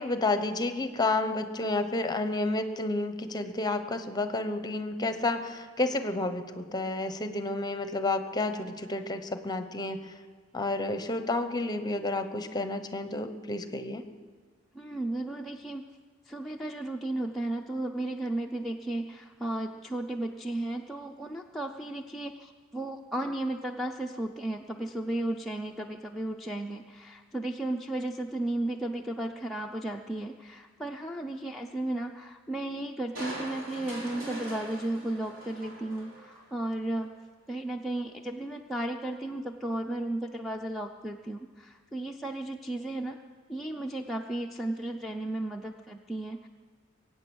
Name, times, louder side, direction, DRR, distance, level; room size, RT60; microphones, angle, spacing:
voice 1, 0.0-10.0 10.5-14.0, left 2 dB, 20° left, 9 dB, 0.9 m, -30 dB
voice 2, 14.7-15.8 16.3-37.1 37.5-43.2 43.5-46.5, right 1 dB, ahead, -1 dB, 0.5 m, -34 dB
Crushing, 33.1-36.5 37.0-37.1, right 1 dB, 65° right, 4.4 m, -41 dB
23.0 x 8.8 x 6.3 m, 1.5 s
head